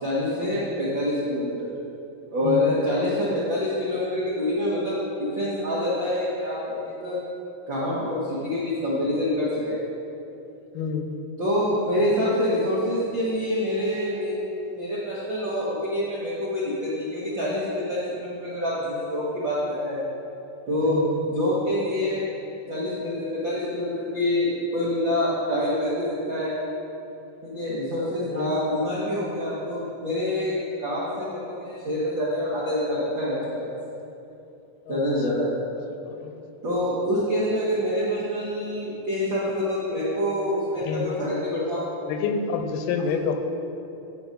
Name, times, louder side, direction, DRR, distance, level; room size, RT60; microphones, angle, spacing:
voice 1, 0.0-1.7 2.3-7.2 7.7-9.8 11.4-20.0 20.7-22.2 22.7-26.5 27.4-33.7 34.9-35.5 36.6-41.9, left 1 dB, 70° right, -8 dB, 1.1 m, -26 dB
voice 2, 2.4-2.7 10.7-11.1 20.8-21.1 28.0-28.5 34.9-35.0 36.0-36.3 40.8-41.3 42.0-43.3, left 5 dB, 85° left, 5 dB, 2.6 m, -28 dB
9.6 x 5.9 x 5.2 m, 2.8 s
omnidirectional pair, 4.4 m